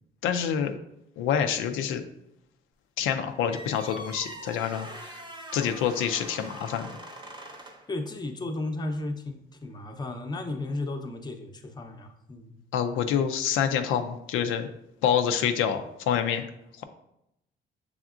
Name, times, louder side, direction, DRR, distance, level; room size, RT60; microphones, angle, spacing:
voice 1, 0.2-0.8 1.2-2.0 3.0-5.2 5.5-6.9 12.7-14.7 15.0-16.4 16.8-16.9, left 8 dB, 90° left, 6 dB, 0.4 m, -27 dB
sound 1, 3.5-7.9, right 1 dB, 20° right, 0.7 m, -42 dB
voice 2, 7.9-12.6, left 2 dB, 20° left, 4 dB, 0.6 m, -34 dB
6.0 x 3.4 x 2.4 m, 0.81 s
cardioid pair, 90°, 20 cm